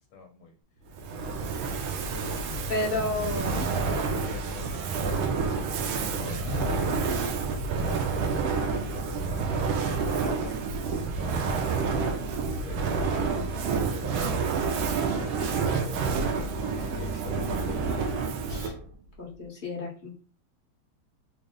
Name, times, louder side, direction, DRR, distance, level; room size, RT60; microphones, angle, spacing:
voice 1, 0.1-0.5 1.1-1.6 2.1-5.4 5.9-7.2 7.8-14.5 15.0-18.2, left 4 dB, 80° left, 2 dB, 1.4 m, -43 dB
Fire, 0.9-18.9, right 4 dB, 75° right, 1.3 m, -29 dB
voice 2, 2.7-3.6 18.5-18.7 19.2-20.1, left 2 dB, 35° left, -3 dB, 0.9 m, -31 dB
4.0 x 2.0 x 3.7 m, 0.38 s
omnidirectional pair, 2.3 m